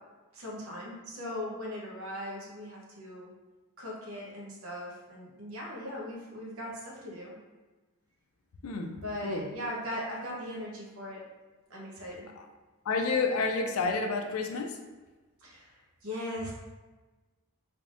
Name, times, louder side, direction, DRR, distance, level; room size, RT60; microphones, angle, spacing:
voice 1, 0.3-3.3 3.8-7.4 8.9-11.2 11.7-12.3 15.4-16.5, left 1 dB, 70° right, -3 dB, 0.9 m, -39 dB
voice 2, 8.6-8.9 9.2-9.5 12.4-12.5 12.9-14.8, left 4 dB, 80° left, 4 dB, 0.4 m, -29 dB
3.5 x 3.4 x 2.5 m, 1.2 s
head